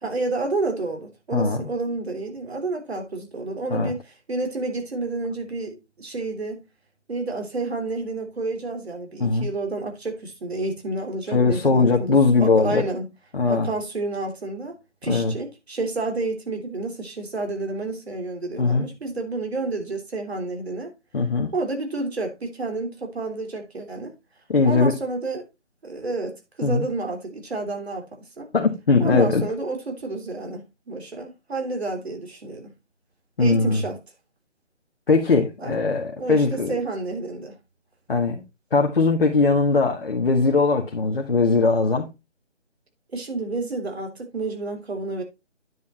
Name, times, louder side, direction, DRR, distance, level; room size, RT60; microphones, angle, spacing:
voice 1, 0.0-4.0 4.3-6.6 7.1-13.1 13.5-14.8 15.0-20.9 21.5-24.1 24.6-25.4 25.8-28.5 29.0-32.7 33.4-34.0 35.6-35.7 36.2-37.5 43.1-45.2, right 3 dB, 60° right, 3.2 m, -30 dB
voice 2, 11.3-12.8 13.3-13.7 15.1-15.3 18.6-18.9 21.1-21.5 24.5-24.9 26.6-26.9 28.5-29.4 33.4-33.8 35.1-36.8 38.1-38.4 38.7-42.1, left 4 dB, 50° left, 1.7 m, -20 dB
9.7 x 5.4 x 4.3 m
figure-of-eight pair, 165°, 36 cm